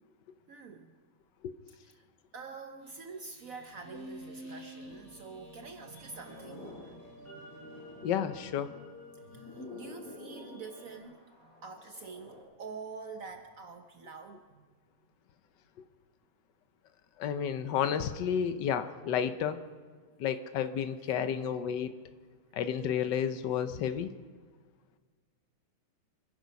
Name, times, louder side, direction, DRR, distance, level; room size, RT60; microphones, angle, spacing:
voice 1, 0.5-0.9 1.7-2.0 2.3-7.1 9.3-14.7 21.9-22.2, right 4 dB, 55° right, 6 dB, 1.2 m, -46 dB
sound 1, 2.8-8.8 9.1-12.4, left 2 dB, 55° left, 6.0 m, -51 dB
sound 2, 3.8-11.0, left 1 dB, 10° left, 2.7 m, -50 dB
voice 2, 8.0-8.7 17.2-19.6 20.2-21.9 22.5-24.1, left 8 dB, 85° left, 10 dB, 1.5 m, -31 dB
26.0 x 10.5 x 5.4 m, 1.5 s
omnidirectional pair, 1.9 m